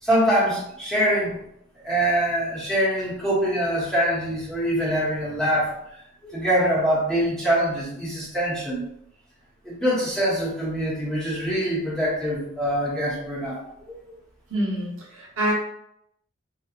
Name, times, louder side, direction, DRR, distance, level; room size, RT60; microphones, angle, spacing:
voice 1, 0.0-1.4 1.8-5.7 6.2-8.9 9.6-14.0, equal, 5° left, -8 dB, 1.0 m, -24 dB
voice 2, 14.5-15.5, right 1 dB, 75° right, -3 dB, 1.0 m, -26 dB
4.4 x 2.2 x 2.5 m, 0.76 s
head